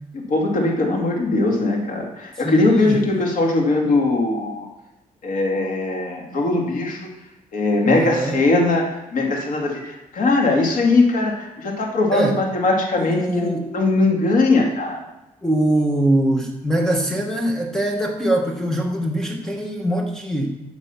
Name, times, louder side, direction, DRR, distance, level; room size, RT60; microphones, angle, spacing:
voice 1, 0.1-4.7 5.2-7.1 7.5-13.5 13.7-15.0, left 2 dB, 65° left, 0 dB, 2.5 m, -20 dB
voice 2, 2.4-3.0 7.8-8.4 12.1-12.4 13.0-13.7 15.4-20.5, right 1 dB, 5° left, 2 dB, 1.2 m, -22 dB
16.0 x 6.0 x 5.8 m, 0.96 s
cardioid pair, 150°, 14 cm